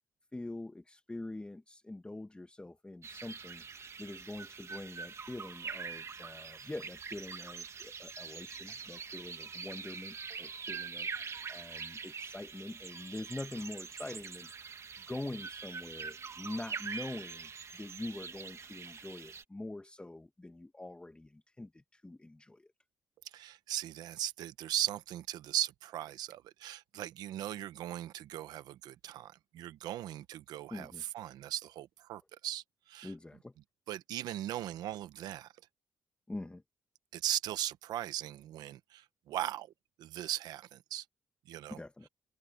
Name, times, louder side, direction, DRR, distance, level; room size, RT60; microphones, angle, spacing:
voice 1, 0.3-3.6 4.0-14.5 15.1-22.7 30.7-31.0 33.0-33.5 36.3-36.6 41.7-42.1, left 2 dB, 15° left, 1.2 m, -44 dB
sound 1, 3.0-19.4, right 5 dB, 45° right, 2.1 m, -44 dB
voice 2, 23.3-33.1 33.9-35.5 37.1-39.7 40.0-41.0 41.5-41.8, right 13 dB, 85° right, 0.9 m, -38 dB
cardioid pair, 80°, 7 cm